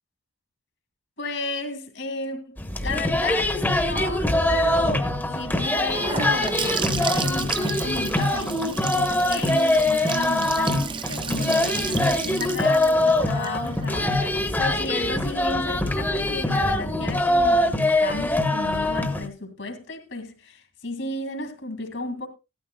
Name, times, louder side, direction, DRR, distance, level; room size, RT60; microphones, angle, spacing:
voice 1, 1.2-5.1 5.3-22.3, left 2 dB, 65° left, 2.3 m, -33 dB
sound 1, 2.6-19.2, left 1 dB, 10° left, 1.0 m, -23 dB
Gurgling / Sink (filling or washing) / Bathtub (filling or washing), 5.6-15.4, right 6 dB, 25° right, 0.6 m, -33 dB
16.0 x 13.0 x 2.2 m
head